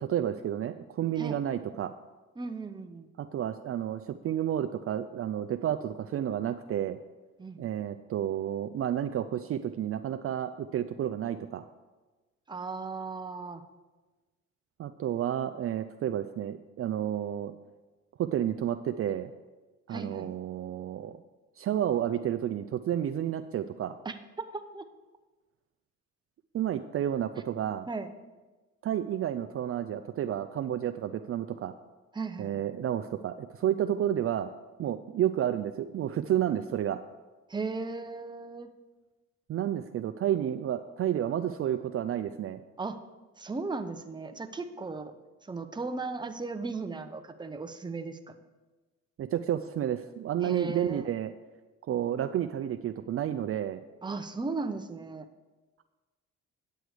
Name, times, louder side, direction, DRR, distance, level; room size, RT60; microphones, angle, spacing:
voice 1, 0.0-1.9 3.2-7.0 7.6-11.7 14.8-17.5 18.2-19.3 19.9-21.2 21.6-24.0 26.5-27.9 28.8-31.7 32.4-34.5 34.8-37.0 39.5-42.6 49.2-51.3 51.9-53.8, right 10 dB, 50° right, 9 dB, 0.4 m, -31 dB
voice 2, 2.4-3.1 7.4-7.6 12.5-13.6 19.9-20.3 24.0-24.8 27.9-28.1 32.1-32.6 37.5-38.7 42.8-43.0 43.4-45.1 45.5-48.3 50.4-51.1 54.0-55.3, right 3 dB, 15° right, 7 dB, 0.7 m, -36 dB
9.3 x 7.8 x 4.9 m, 1.2 s
cardioid pair, 90°, 30 cm